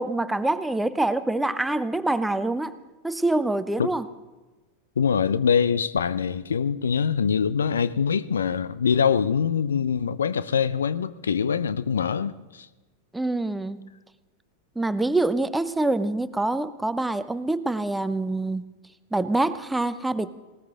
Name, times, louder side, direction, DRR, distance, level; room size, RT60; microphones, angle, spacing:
voice 1, 0.0-2.8 3.0-4.1 13.1-13.9 14.8-18.7 19.1-20.3, right 2 dB, 5° right, 0.6 m, -25 dB
voice 2, 5.0-12.7, left 7 dB, 70° left, 0.5 m, -24 dB
19.5 x 18.5 x 3.7 m
figure-of-eight pair, 90°, 0 cm